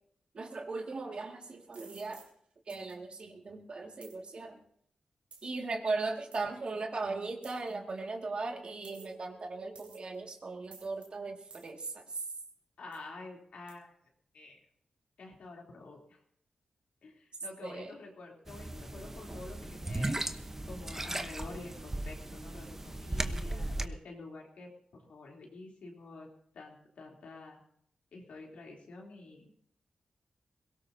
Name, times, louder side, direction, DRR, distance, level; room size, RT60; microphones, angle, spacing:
voice 1, 0.3-2.3 2.7-4.6 5.4-12.2 17.6-17.9, right 3 dB, 55° right, 2 dB, 2.2 m, -38 dB
sound 1, 1.7-2.3 2.7-2.9 4.0-4.2 5.3-5.6 6.3-6.4 7.4-7.7 8.8-9.2 9.8-10.2 10.7-11.1 11.5-11.7 12.2-12.3 12.9-13.1 13.7-13.8, right 4 dB, 80° right, 3.1 m, -54 dB
voice 2, 12.8-13.9 14.3-14.6 15.2-16.2 17.0-20.3 20.7-26.3 26.5-27.6 28.1-29.4, left 3 dB, 90° left, -1 dB, 3.3 m, -48 dB
sound 2, 18.5-23.9, right 1 dB, 20° right, 1.0 m, -37 dB
22.0 x 17.5 x 2.8 m, 0.69 s
cardioid pair, 80°, 2 cm